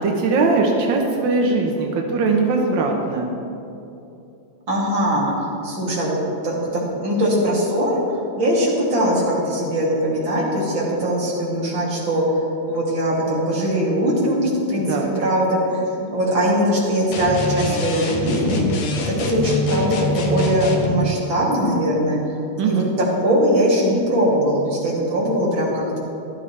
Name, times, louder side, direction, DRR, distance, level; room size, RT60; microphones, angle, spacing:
voice 1, 0.0-3.3 14.8-15.1 22.6-22.9, right 3 dB, 65° right, 1 dB, 1.1 m, -20 dB
voice 2, 4.7-5.3 5.6-6.2 6.4-8.0 8.4-12.2 12.7-18.7 19.0-22.2 22.6-22.8 23.2-26.0, equal, 40° right, -6 dB, 3.3 m, -21 dB
sound 1, 17.1-21.0, left 2 dB, 60° left, 1.8 m, -25 dB
15.0 x 12.0 x 3.3 m, 2.8 s
omnidirectional pair, 3.4 m